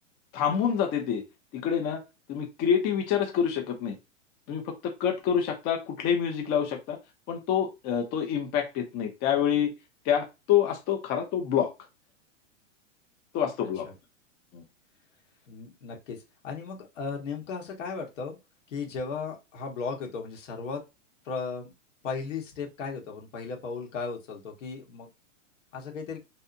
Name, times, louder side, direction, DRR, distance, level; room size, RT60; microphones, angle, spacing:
voice 1, 0.3-1.2 1.5-2.0 2.3-3.9 4.5-7.0 7.3-9.7 10.0-11.7 13.3-13.9 14.5-14.6, left 8 dB, 25° left, 3 dB, 0.5 m, -27 dB
voice 2, 15.5-16.2 16.4-18.4 18.7-20.8 21.2-21.7 22.0-25.1 25.7-26.2, left 5 dB, 70° left, 2 dB, 1.2 m, -36 dB
2.6 x 2.1 x 2.5 m, 0.25 s
hypercardioid pair, 130°, 38 cm